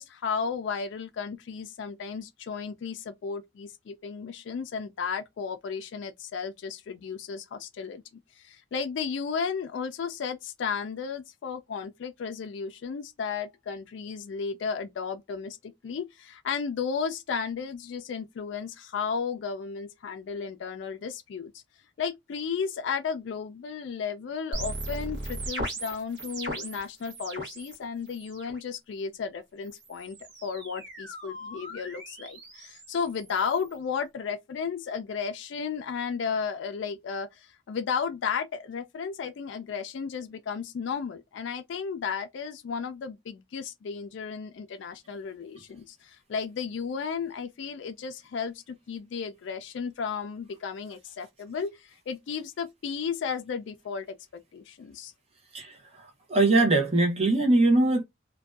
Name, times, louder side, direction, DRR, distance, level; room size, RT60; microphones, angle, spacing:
voice 1, 0.0-21.5 22.0-30.2 30.4-54.1 54.3-55.1, left 6 dB, 70° left, 0.3 m, -34 dB
sound 1, 24.5-27.8 28.1-28.6 29.6-33.8, right 1 dB, 55° right, 0.9 m, -38 dB
voice 2, 55.5-58.0, right 2 dB, 30° right, 0.7 m, -22 dB
2.5 x 2.2 x 2.2 m
head